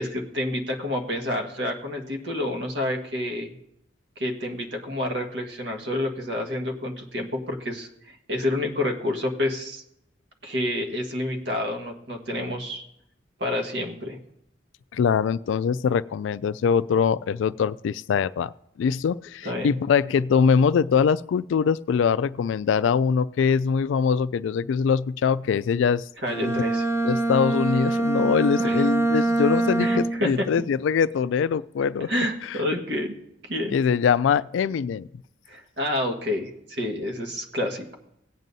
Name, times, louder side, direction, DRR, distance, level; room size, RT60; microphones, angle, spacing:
voice 1, 0.0-3.5 4.2-9.8 10.4-12.8 13.4-14.2 19.4-19.8 26.2-26.8 28.6-28.8 29.8-30.4 32.1-33.1 33.4-33.8 35.5-37.9, left 1 dB, 65° right, 3 dB, 1.5 m, -29 dB
voice 2, 14.9-18.5 18.8-26.0 26.5-26.6 27.0-32.1 33.7-35.1, left 6 dB, 75° left, 16 dB, 0.3 m, -23 dB
Bowed string instrument, 26.2-30.4, right 2 dB, 15° right, 0.6 m, -24 dB
17.0 x 9.0 x 2.7 m, 0.79 s
head